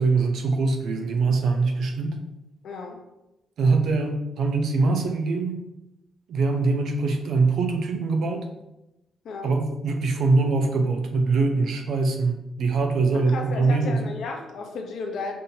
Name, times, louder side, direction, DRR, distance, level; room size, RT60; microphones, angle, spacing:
voice 1, 0.0-2.2 3.6-5.6 6.3-8.5 9.4-14.1, right 3 dB, 65° right, 4 dB, 0.6 m, -23 dB
voice 2, 2.6-3.0 9.2-9.5 13.1-15.4, left 4 dB, 65° left, 2 dB, 0.7 m, -34 dB
5.4 x 2.7 x 2.7 m, 0.93 s
cardioid pair, 130°, 0 cm